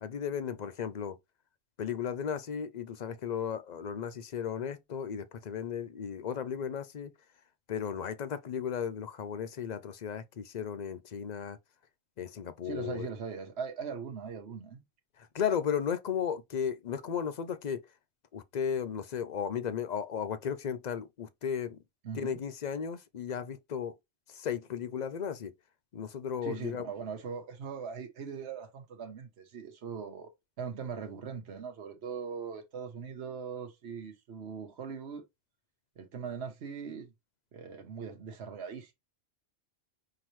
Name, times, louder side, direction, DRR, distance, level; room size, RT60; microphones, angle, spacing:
voice 1, 0.0-1.2 1.8-7.1 7.7-11.6 12.2-13.1 15.3-17.8 18.3-21.8 22.1-24.0 24.3-25.5 25.9-26.8, left 7 dB, 50° left, 0.6 m, -35 dB
voice 2, 12.6-14.8 22.0-22.4 26.4-30.3 30.6-35.2 36.0-37.1 37.5-38.9, right 6 dB, 75° right, 1.2 m, -40 dB
5.8 x 2.8 x 3.0 m
omnidirectional pair, 1.1 m